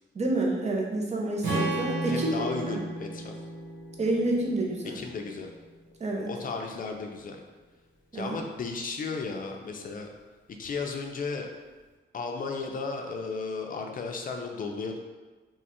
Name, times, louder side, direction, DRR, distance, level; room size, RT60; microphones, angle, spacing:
voice 1, 0.1-2.3 2.7-2.8 4.0-5.0 6.0-6.3 8.1-8.4, right 2 dB, 35° right, -2 dB, 0.7 m, -28 dB
Strum, 1.4-5.7, right 1 dB, 85° right, 1.3 m, -34 dB
voice 2, 2.1-3.3 4.9-5.5 6.3-7.4 8.1-10.1 10.6-11.5 12.1-15.0, left 4 dB, 45° left, 3 dB, 0.5 m, -34 dB
3.0 x 2.4 x 4.2 m, 1.3 s
cardioid pair, 120°, 19 cm